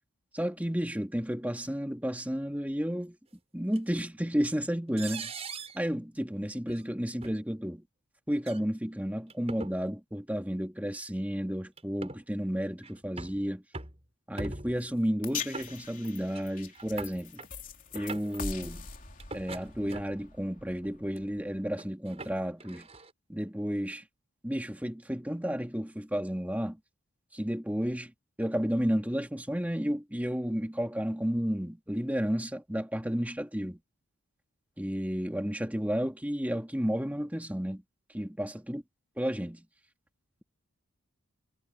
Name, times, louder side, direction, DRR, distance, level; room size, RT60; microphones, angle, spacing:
voice 1, 0.3-3.2 3.5-5.3 5.7-7.8 8.3-13.6 14.3-17.4 17.9-18.9 19.3-22.9 23.3-24.0 24.4-26.8 27.3-28.1 28.4-33.8 34.8-37.8 38.1-38.8 39.2-39.7, equal, 5° right, 2.1 m, -32 dB
sound 1, 3.7-3.8 5.0-5.8 6.7-6.8 7.2-7.3 8.4-8.6 9.3-9.8 10.9-11.1 11.8-12.2 12.8-13.4 13.7-14.0 14.4-14.9 15.5-16.1 16.3-16.5 16.7-17.5 17.9-18.4 19.2-20.3 20.8-21.2 21.8-23.1, right 3 dB, 30° right, 5.5 m, -42 dB
sound 2, 15.2-21.6, left 5 dB, 40° left, 3.3 m, -42 dB
head